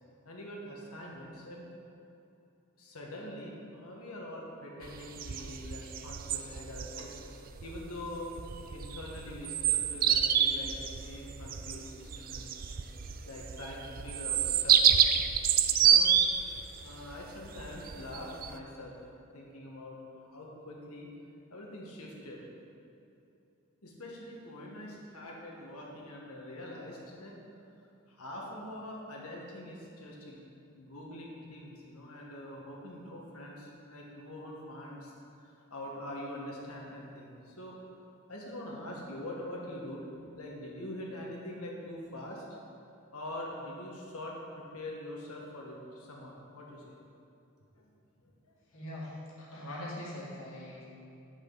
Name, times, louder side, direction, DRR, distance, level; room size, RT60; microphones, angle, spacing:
voice 1, 0.3-1.7 2.8-8.4 8.7-12.6 13.3-15.0 15.8-16.1 16.8-18.9 19.3-21.1 21.5-22.4 23.8-27.3 28.1-30.4 30.7-35.1 35.4-37.8 38.3-40.0 40.4-42.4 43.1-47.0 47.8-47.9 48.2-48.6, left 1 dB, 90° left, -2 dB, 1.8 m, -44 dB
sound 1, 4.8-18.5, right 8 dB, 40° right, 0.4 m, -28 dB
voice 2, 48.7-50.9, left 1 dB, 65° left, -5 dB, 2.3 m, -42 dB
9.1 x 8.2 x 4.1 m, 2.7 s
head